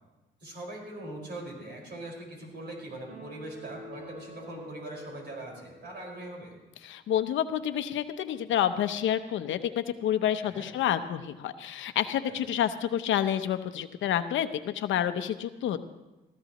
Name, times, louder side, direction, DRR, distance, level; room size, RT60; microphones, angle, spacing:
voice 1, 0.4-6.6 10.4-10.7 12.3-12.4, right 1 dB, 55° right, 0 dB, 5.2 m, -41 dB
sound 1, 3.1-6.6, equal, 35° right, 4.6 m, -47 dB
voice 2, 6.8-15.8, left 10 dB, 75° left, 10 dB, 0.8 m, -29 dB
19.5 x 14.0 x 3.0 m, 1.1 s
cardioid pair, 90°, 20 cm